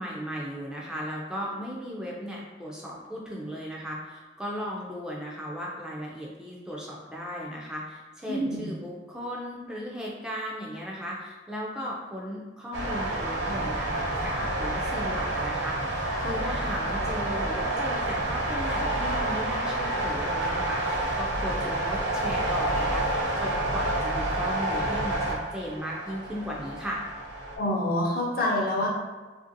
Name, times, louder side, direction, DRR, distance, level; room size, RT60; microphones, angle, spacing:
voice 1, 0.0-27.0, equal, 5° right, -4 dB, 0.3 m, -36 dB
voice 2, 8.3-8.7 16.2-16.6 27.6-28.9, left 1 dB, 50° left, -2 dB, 0.6 m, -27 dB
sound 1, 12.7-27.6, right 1 dB, 70° right, 0.6 m, -29 dB
2.7 x 2.5 x 2.6 m, 1.3 s
head